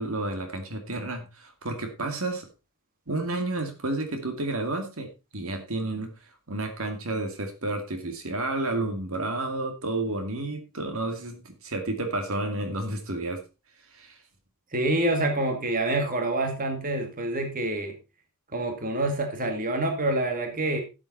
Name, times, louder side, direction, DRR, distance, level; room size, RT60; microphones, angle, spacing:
voice 1, 0.0-2.5 3.1-6.1 6.5-13.4 13.9-14.2, right 2 dB, 70° right, 6 dB, 2.3 m, -31 dB
voice 2, 14.7-18.0 18.5-20.8, right 2 dB, 40° right, 4 dB, 2.1 m, -27 dB
12.5 x 7.6 x 4.1 m, 0.28 s
head